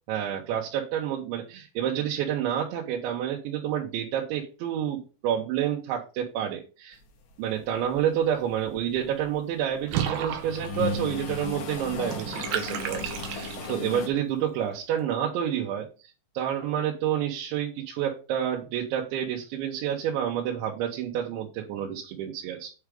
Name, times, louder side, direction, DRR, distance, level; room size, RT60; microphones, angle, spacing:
voice 1, 0.1-7.0 7.4-15.9 16.3-22.7, right 10 dB, 85° right, -1 dB, 3.4 m, -29 dB
sound 1, 7.7-8.0 8.4-9.8 10.2-14.1, left 5 dB, 80° left, 4.0 m, -35 dB
Water / Bathtub (filling or washing), 9.9-13.9, right 9 dB, 70° right, 2.6 m, -33 dB
8.9 x 4.8 x 5.1 m, 0.33 s
omnidirectional pair, 5.1 m